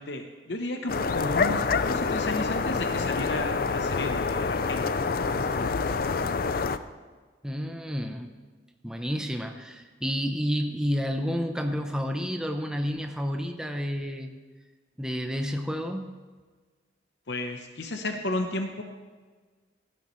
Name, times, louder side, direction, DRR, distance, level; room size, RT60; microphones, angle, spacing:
voice 1, 0.0-4.9 5.3-5.8 17.3-18.8, left 2 dB, 70° left, 5 dB, 0.9 m, -33 dB
sound 1, 0.9-6.8, left 4 dB, 50° left, 0.4 m, -27 dB
voice 2, 7.4-8.3 8.8-14.4 15.0-16.2, equal, 5° right, 4 dB, 0.7 m, -30 dB
17.5 x 12.0 x 3.2 m, 1.4 s
head